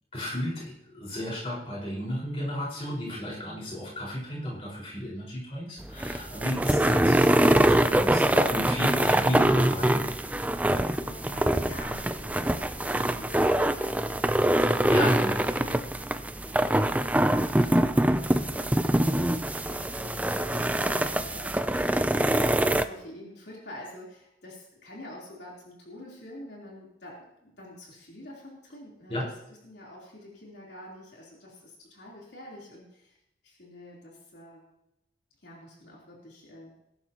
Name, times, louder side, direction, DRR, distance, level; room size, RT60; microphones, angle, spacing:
voice 1, 0.1-10.0 14.9-15.8 29.1-29.3, left 1 dB, 35° left, -5 dB, 4.9 m, -33 dB
sound 1, 5.8-22.8, right 1 dB, 10° right, 0.4 m, -24 dB
voice 2, 10.2-21.8 22.1-33.2 33.4-34.7 35.4-36.7, left 1 dB, 70° left, -4 dB, 3.6 m, -47 dB
21.0 x 11.5 x 3.0 m, 0.85 s
head